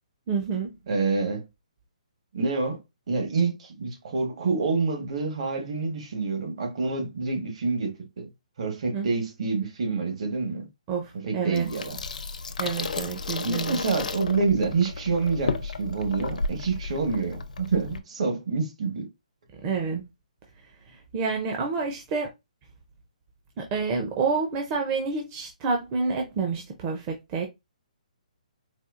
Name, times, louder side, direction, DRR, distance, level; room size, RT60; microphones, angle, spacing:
voice 1, 0.3-0.7 8.9-9.1 10.9-11.7 12.6-13.8 19.6-20.0 21.1-22.3 23.6-27.5, right 5 dB, 20° right, 0.5 m, -28 dB
voice 2, 0.9-1.5 2.3-2.8 3.1-8.3 8.6-10.7 11.2-12.0 13.4-19.1, right 4 dB, 50° right, 1.3 m, -27 dB
Water tap faucet / Sink (filling or washing), 11.6-18.0, left 4 dB, 85° left, 0.6 m, -33 dB
4.2 x 2.3 x 2.4 m
hypercardioid pair, 165°, 4 cm